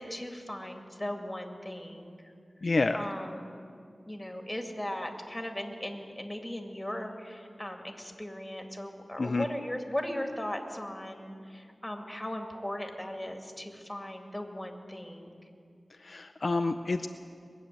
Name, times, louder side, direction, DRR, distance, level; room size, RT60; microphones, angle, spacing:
voice 1, 0.0-2.3 2.9-3.7 4.1-15.4, left 1 dB, 15° left, 3 dB, 2.1 m, -38 dB
voice 2, 2.6-3.1 9.2-9.5 16.0-17.1, left 3 dB, 60° left, 7 dB, 0.5 m, -28 dB
21.0 x 7.1 x 9.2 m, 2.4 s
wide cardioid pair, 50°, 0 cm